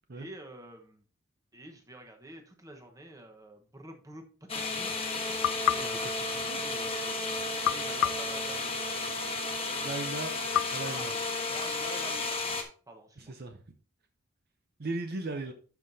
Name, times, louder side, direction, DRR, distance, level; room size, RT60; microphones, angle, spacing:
voice 1, 0.1-1.0 1.5-4.2 4.5-5.0 5.6-7.1 7.5-8.8 9.2-9.4 10.9-11.1 11.5-12.4 12.9-13.3, right 1 dB, 15° right, 3 dB, 1.2 m, -48 dB
sound 1, 4.5-12.6, left 3 dB, 25° left, 1.2 m, -33 dB
sound 2, 5.4-7.0 7.6-9.2 10.5-11.9, left 10 dB, 70° left, 0.3 m, -33 dB
voice 2, 5.7-6.6 9.8-10.4 10.7-11.1 13.2-13.6 14.8-15.5, right 2 dB, 50° right, 6 dB, 0.7 m, -37 dB
11.5 x 5.8 x 2.7 m, 0.40 s
head